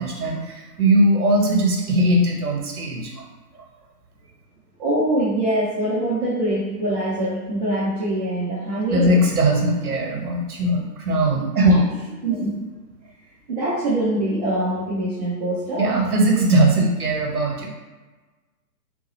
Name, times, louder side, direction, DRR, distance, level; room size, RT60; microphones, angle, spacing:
voice 1, 0.0-3.2 3.5-3.7 8.9-11.9 15.8-17.7, right 1 dB, 60° right, 0 dB, 1.0 m, -19 dB
voice 2, 4.8-9.2 12.2-12.5 13.5-15.8, right 1 dB, 25° right, -12 dB, 0.6 m, -23 dB
3.8 x 2.2 x 3.0 m, 1.3 s
figure-of-eight pair, 135°, 49 cm